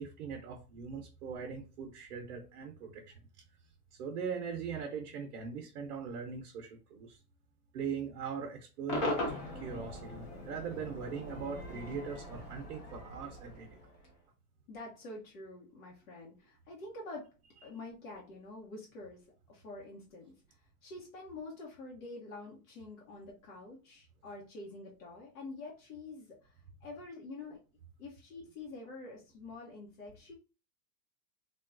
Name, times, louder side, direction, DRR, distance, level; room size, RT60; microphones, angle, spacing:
voice 1, 0.0-3.2 3.9-7.2 7.7-13.8, right 6 dB, 55° right, 2 dB, 0.7 m, -41 dB
Cheering / Crowd / Fireworks, 8.9-14.2, left 1 dB, 20° left, 0.4 m, -40 dB
voice 2, 14.7-17.3 17.6-27.6 28.0-30.3, left 2 dB, 70° left, -2 dB, 0.9 m, -47 dB
3.4 x 2.2 x 2.5 m, 0.34 s
supercardioid pair, 160°, 45 cm